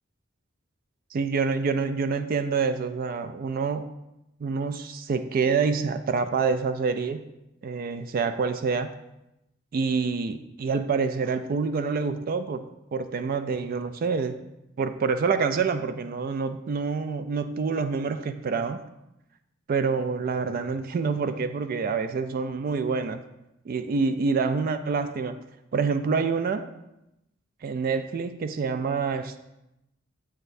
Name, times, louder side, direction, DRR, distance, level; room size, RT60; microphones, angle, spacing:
voice 1, 1.1-3.9 4.4-7.2 7.6-8.9 9.7-12.7 12.9-14.4 14.8-18.8 19.7-23.2 23.7-25.4 25.7-26.7 27.6-29.4, right 5 dB, 50° right, 9 dB, 0.3 m, -27 dB
7.6 x 6.4 x 2.6 m, 0.90 s
head